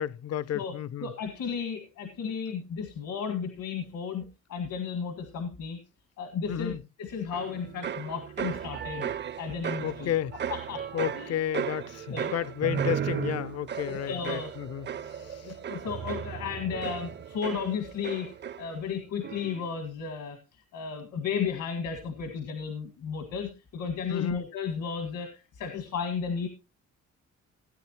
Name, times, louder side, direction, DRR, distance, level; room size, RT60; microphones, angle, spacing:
voice 1, 0.0-1.1 6.5-6.8 9.8-10.3 10.9-14.9 24.1-24.4, left 10 dB, 55° left, 0.6 m, -31 dB
voice 2, 1.0-5.8 6.2-9.1 9.4-10.1 10.5-11.4 12.1-12.3 13.8-14.5 15.2-18.3 18.6-20.4 20.7-26.5, left 6 dB, 80° left, 1.9 m, -34 dB
sound 1, 7.3-18.9 19.2-19.7, right 8 dB, 35° right, 0.5 m, -35 dB
17.5 x 9.6 x 2.9 m
cardioid pair, 90°, 30 cm